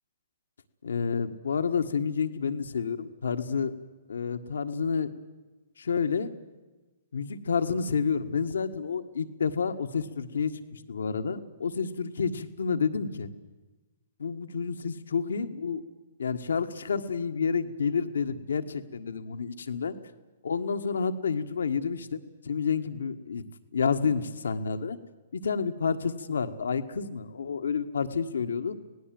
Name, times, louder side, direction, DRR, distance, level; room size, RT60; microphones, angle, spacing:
voice 1, 0.8-3.7 4.1-5.1 5.8-6.3 7.1-13.3 14.2-15.8 16.2-19.9 20.4-23.4 23.7-25.0 25.3-28.8, left 5 dB, 75° left, 9 dB, 1.7 m, -29 dB
27.0 x 18.5 x 7.8 m, 1.2 s
hypercardioid pair, 125°, 0 cm